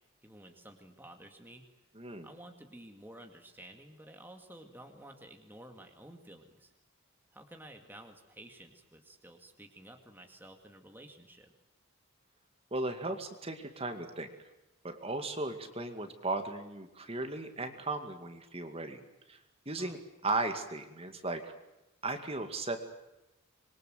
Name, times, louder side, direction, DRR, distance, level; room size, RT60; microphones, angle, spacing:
voice 1, 0.2-1.6 2.2-6.7 7.3-11.5 19.8-20.0, right 1 dB, 10° right, 4 dB, 2.1 m, -52 dB
voice 2, 2.0-2.3 12.7-14.3 14.8-19.0 19.3-19.4 19.7-21.5 22.0-22.9, right 2 dB, 25° right, 6 dB, 2.2 m, -36 dB
26.0 x 23.0 x 7.8 m, 0.97 s
head